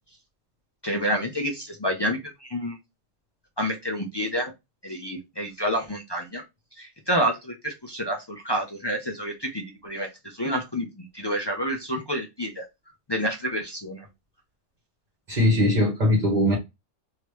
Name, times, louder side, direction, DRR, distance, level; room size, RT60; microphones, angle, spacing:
voice 1, 0.8-2.8 3.6-4.5 4.8-6.4 6.8-12.6 13.1-14.0, equal, 40° left, 0.3 m, -29 dB
voice 2, 15.3-16.6, left 1 dB, 40° right, 1.1 m, -20 dB
3.2 x 2.8 x 3.1 m
omnidirectional pair, 1.3 m